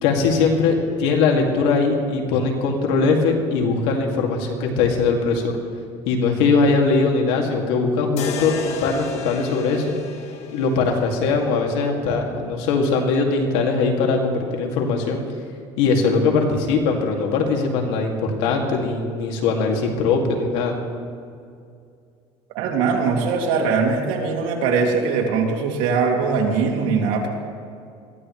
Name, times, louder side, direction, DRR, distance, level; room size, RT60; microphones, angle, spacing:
voice 1, 0.0-5.6 6.0-9.9 10.5-15.2 15.8-20.7, left 4 dB, 85° left, 1 dB, 2.4 m, -21 dB
sound 1, 8.2-12.2, left 6 dB, 55° left, 1.5 m, -34 dB
voice 2, 22.5-27.3, right 5 dB, 75° right, 0 dB, 2.6 m, -21 dB
22.0 x 15.0 x 3.3 m, 2.4 s
cardioid pair, 125°, 13 cm